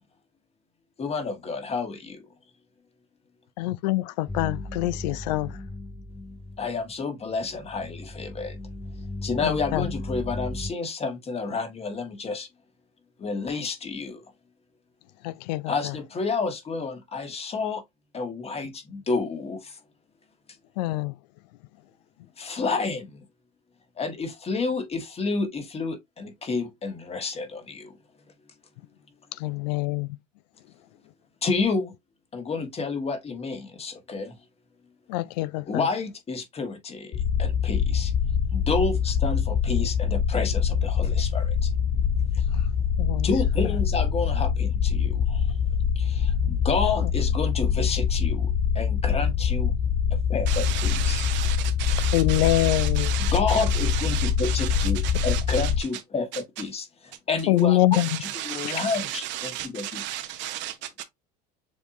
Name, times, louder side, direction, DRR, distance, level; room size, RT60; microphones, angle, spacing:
voice 1, 1.0-2.2 6.6-8.6 9.2-12.5 13.2-14.2 15.7-17.8 18.1-19.8 22.4-23.2 24.0-27.9 31.4-31.9 32.3-34.4 35.7-38.1 38.5-41.7 42.3-42.4 43.2-45.4 45.9-49.7 50.3-51.3 53.2-56.3 56.6-56.9 57.3-60.0, left 4 dB, 30° left, 1.5 m, -30 dB
voice 2, 3.6-5.6 9.4-9.9 15.2-15.9 20.8-21.2 29.4-30.2 35.1-35.9 42.6-42.7 43.0-43.3 52.1-53.1 57.5-58.2 58.6-58.7, left 16 dB, 80° left, 0.4 m, -25 dB
sound 1, 4.3-6.9 7.3-10.7, left 2 dB, 5° left, 0.3 m, -36 dB
sound 2, 37.1-55.8, left 7 dB, 45° left, 0.8 m, -24 dB
voice 3, 50.5-55.7 56.3-56.4 57.9-61.0, right 13 dB, 60° right, 0.8 m, -34 dB
7.0 x 2.7 x 2.6 m
supercardioid pair, 95°, 21 cm